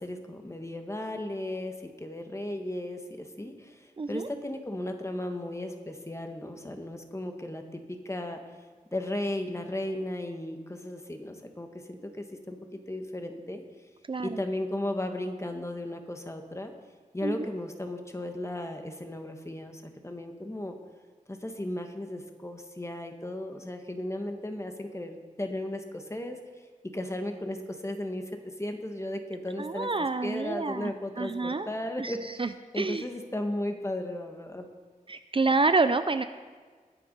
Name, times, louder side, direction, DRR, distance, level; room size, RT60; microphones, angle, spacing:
voice 1, 0.0-8.4 8.9-13.6 14.2-16.7 17.1-20.7 21.3-26.4 26.8-32.4 32.7-34.7, left 1 dB, 20° left, 5 dB, 1.3 m, -35 dB
voice 2, 4.0-4.3 14.1-14.4 17.2-17.5 29.6-30.9 31.2-31.7 32.0-32.1 32.4-32.5 32.7-33.0 35.1-36.2, right 3 dB, 40° right, 10 dB, 0.5 m, -27 dB
20.5 x 6.9 x 5.3 m, 1.5 s
wide cardioid pair, 85°, 14 cm